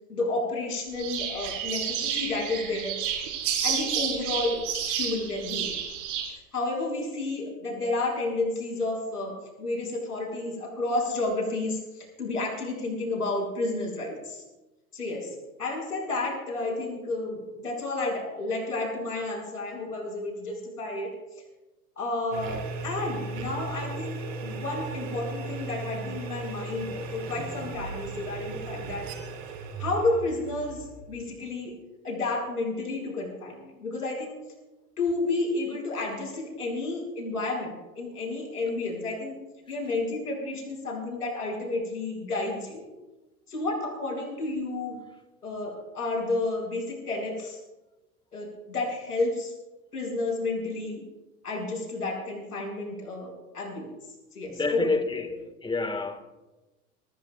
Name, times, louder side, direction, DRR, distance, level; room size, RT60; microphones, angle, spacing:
voice 1, 0.1-3.0 3.6-4.6 4.9-5.7 6.3-14.4 14.9-21.1 22.0-29.1 29.8-31.7 32.0-34.4 35.0-39.4 39.7-42.8 43.5-45.0 45.4-47.6 48.3-49.5 49.9-51.0 51.4-53.9 54.3-54.9, left 2 dB, 85° left, 6.3 m, -31 dB
sound 1, 1.0-6.3, right 8 dB, 45° right, 4.8 m, -30 dB
sound 2, 22.3-31.4, right 3 dB, 60° right, 3.3 m, -36 dB
voice 2, 54.5-56.2, left 3 dB, 10° left, 1.7 m, -29 dB
24.5 x 19.5 x 2.4 m
figure-of-eight pair, 90°, 45 cm